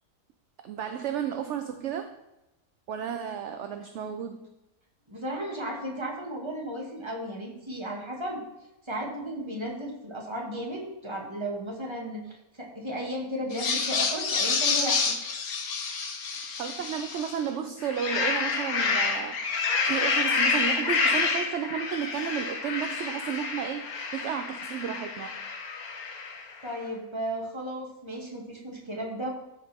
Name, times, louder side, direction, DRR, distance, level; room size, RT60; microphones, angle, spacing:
voice 1, 0.6-2.2 2.9-4.5 16.6-25.4, right 8 dB, 60° right, 7 dB, 0.9 m, -33 dB
voice 2, 5.1-8.4 8.9-15.1 26.6-29.3, right 1 dB, 20° right, -2 dB, 2.1 m, -34 dB
sound 1, 13.5-17.4 17.8-26.5, left 4 dB, 75° left, 1.5 m, -28 dB
14.5 x 5.1 x 3.6 m, 0.93 s
omnidirectional pair, 1.6 m